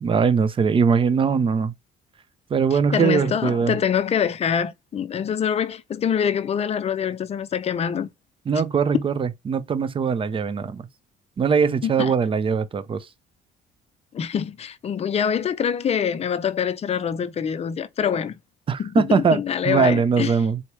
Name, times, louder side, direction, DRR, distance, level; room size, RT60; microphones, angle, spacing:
voice 1, 0.0-1.7 2.5-3.8 8.5-10.8 11.4-13.1 18.7-19.4 19.6-20.6, right 6 dB, 30° right, 0.6 m, -21 dB
voice 2, 2.7-8.1 11.8-12.1 14.1-18.3 18.8-20.3, left 8 dB, 40° left, 0.6 m, -25 dB
4.2 x 3.0 x 3.3 m
cardioid pair, 110°, 17 cm